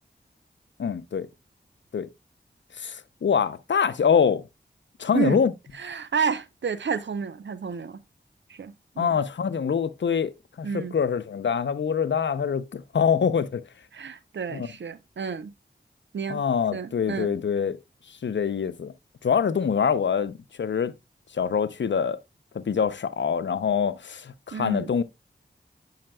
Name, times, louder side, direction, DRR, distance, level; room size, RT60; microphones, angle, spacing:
voice 1, 0.8-1.3 1.9-2.1 2.8-4.4 5.0-5.5 9.0-13.6 14.5-14.7 16.3-17.8 18.1-18.9 19.2-20.9 21.3-22.2 22.5-25.0, left 7 dB, 75° left, 0.6 m, -25 dB
voice 2, 5.7-8.0 8.5-9.1 10.6-10.9 13.9-15.5 16.1-16.4 16.7-17.3 24.5-24.9, right 6 dB, 75° right, 0.6 m, -30 dB
8.7 x 5.7 x 2.2 m
cardioid pair, 40°, 19 cm